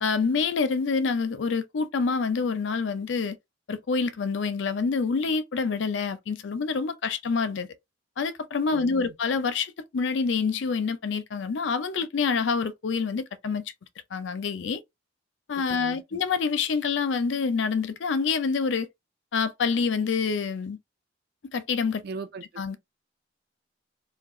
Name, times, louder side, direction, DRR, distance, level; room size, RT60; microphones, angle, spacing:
voice 1, 0.0-3.4 3.7-7.7 8.2-13.6 14.1-14.8 15.5-18.9 19.3-20.8 21.5-22.0 22.6-22.8, left 5 dB, 75° left, 0.5 m, -27 dB
voice 2, 8.7-9.1 15.7-16.2 22.0-22.8, right 4 dB, 55° right, 0.5 m, -40 dB
2.4 x 2.2 x 3.6 m
head